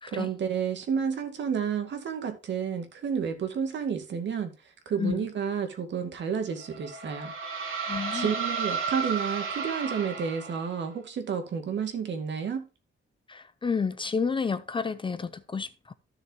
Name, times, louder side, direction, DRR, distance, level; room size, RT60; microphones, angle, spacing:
voice 1, 0.1-4.5 4.9-7.3 8.1-12.6, right 7 dB, 60° right, 2.2 m, -31 dB
sound 1, 6.6-10.9, right 5 dB, 75° right, 3.0 m, -33 dB
voice 2, 7.8-8.3 13.3-15.9, left 5 dB, 25° left, 0.6 m, -30 dB
14.0 x 6.6 x 2.9 m
wide cardioid pair, 170°, 21 cm